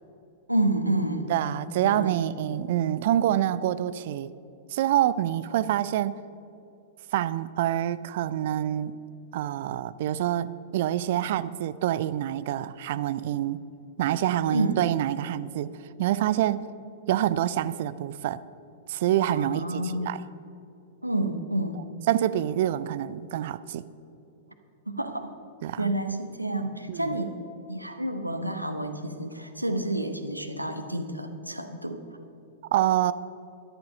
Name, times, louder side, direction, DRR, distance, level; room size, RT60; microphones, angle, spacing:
voice 1, 0.5-2.3 14.5-14.8 19.3-20.1 21.0-21.8 24.9-25.3 25.8-27.3 27.7-32.0, right 1 dB, 90° right, 1.0 m, -29 dB
voice 2, 1.3-4.3 4.7-6.1 7.1-8.9 9.3-13.6 14.0-15.7 16.0-16.7 17.1-18.4 18.9-20.2 22.1-23.8 25.6-25.9 26.9-27.2 32.7-33.1, right 12 dB, 50° right, 0.4 m, -26 dB
13.5 x 10.5 x 5.2 m
figure-of-eight pair, 100°, 0 cm